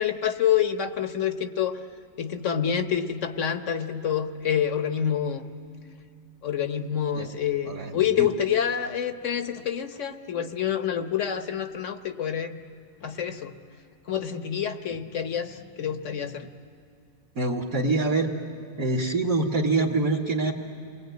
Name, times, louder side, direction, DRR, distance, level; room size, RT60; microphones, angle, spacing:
voice 1, 0.0-1.9 2.2-5.5 6.4-12.6 13.0-13.5 14.1-16.5, left 9 dB, 50° left, 9 dB, 1.1 m, -27 dB
voice 2, 7.7-8.3 17.4-18.3 18.8-20.5, right 2 dB, 50° right, -1 dB, 2.0 m, -25 dB
29.5 x 21.5 x 9.3 m, 2.6 s
omnidirectional pair, 2.0 m